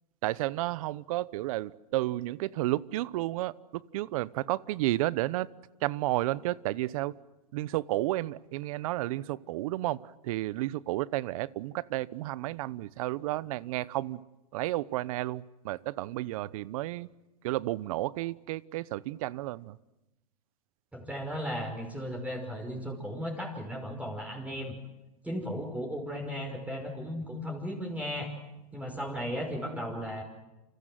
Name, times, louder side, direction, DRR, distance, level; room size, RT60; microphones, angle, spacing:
voice 1, 0.2-5.5 5.8-7.1 7.5-14.2 14.5-17.1 17.4-19.8, right 17 dB, 65° right, 20 dB, 1.0 m, -32 dB
voice 2, 20.9-24.8 25.2-28.3 28.7-30.2, equal, 5° right, 0 dB, 5.5 m, -35 dB
29.0 x 26.0 x 7.8 m, 0.99 s
hypercardioid pair, 115°, 20 cm